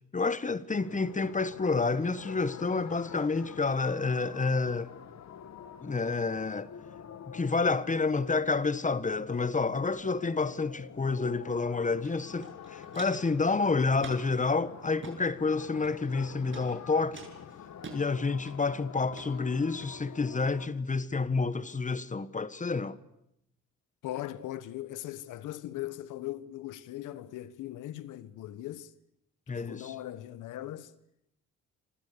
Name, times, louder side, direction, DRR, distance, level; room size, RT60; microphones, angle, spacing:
voice 1, 0.1-4.9 5.8-6.7 7.3-17.2 17.9-23.0 29.5-29.9, left 4 dB, 25° left, 1.4 m, -29 dB
sound 1, 0.8-20.7, left 8 dB, 65° left, 2.3 m, -47 dB
Walk footsteps, 12.0-12.1 12.4-13.3 14.0-14.4 14.9-15.2 15.8-16.2 16.5-16.7 17.1-18.0 18.5-18.8 19.1-19.3 19.8-19.9, right 4 dB, 40° right, 7.6 m, -45 dB
voice 2, 24.0-28.9 29.5-30.9, left 14 dB, 90° left, 1.5 m, -39 dB
26.5 x 26.0 x 6.9 m
cardioid pair, 90°, 30 cm